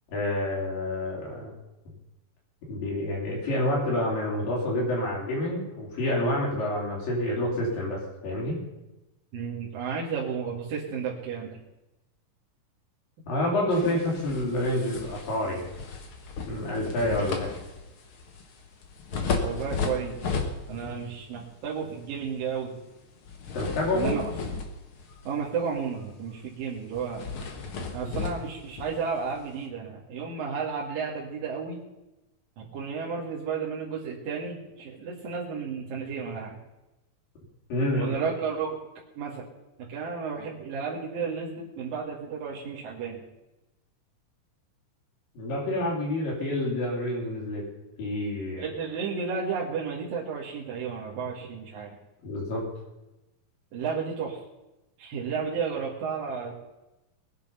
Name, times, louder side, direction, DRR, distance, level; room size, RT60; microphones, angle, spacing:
voice 1, 0.1-1.5 2.7-8.6 13.3-15.7 16.5-17.5 20.7-20.9 23.5-24.2 37.7-38.1 45.3-47.6 48.0-48.7 52.2-52.6, left 1 dB, 85° left, -4 dB, 5.5 m, -28 dB
voice 2, 9.3-11.6 19.4-20.2 20.7-22.8 23.9-24.3 25.3-27.2 27.9-31.8 32.6-36.6 38.0-38.8 39.2-39.5 39.8-43.2 48.6-52.0 53.7-54.4 55.0-56.5, right 6 dB, 90° right, -5 dB, 3.8 m, -32 dB
sound 1, 13.7-21.1 21.4-21.7 23.2-25.5 25.8-26.0 26.3-26.4 26.9-29.6, left 4 dB, 50° left, 2.0 m, -34 dB
20.0 x 10.5 x 5.6 m, 0.99 s
omnidirectional pair, 3.9 m